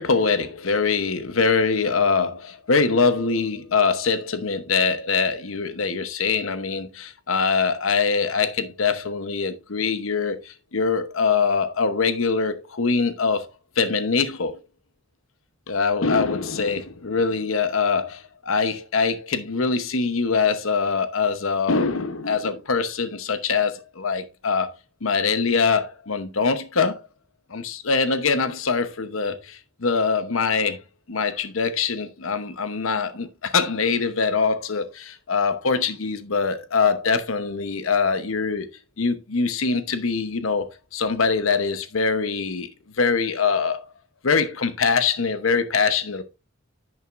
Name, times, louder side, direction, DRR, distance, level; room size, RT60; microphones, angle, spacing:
voice 1, 0.0-13.5 13.8-14.6 15.7-24.7 25.0-27.0 27.5-30.8 31.1-38.7 39.0-42.7 43.0-43.8 44.2-46.2, left 5 dB, 85° left, 0.9 m, -23 dB
10.5 x 6.4 x 2.5 m
head